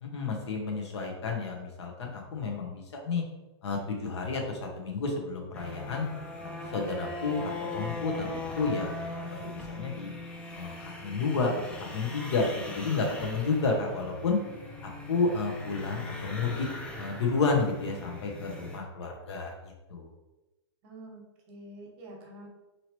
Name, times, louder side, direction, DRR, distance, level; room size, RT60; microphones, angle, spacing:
voice 1, 0.0-3.2 3.6-6.1 6.7-8.3 8.5-9.4 9.7-10.1 10.5-14.4 15.1-16.7 17.0-19.5 19.9-20.1, left 4 dB, 75° left, 1 dB, 0.9 m, -31 dB
sound 1, 5.5-18.8, left 2 dB, 10° left, 0.4 m, -40 dB
voice 2, 20.8-22.5, right 1 dB, 40° right, 0 dB, 1.0 m, -47 dB
3.0 x 2.8 x 2.9 m, 1.0 s
hypercardioid pair, 140°, 14 cm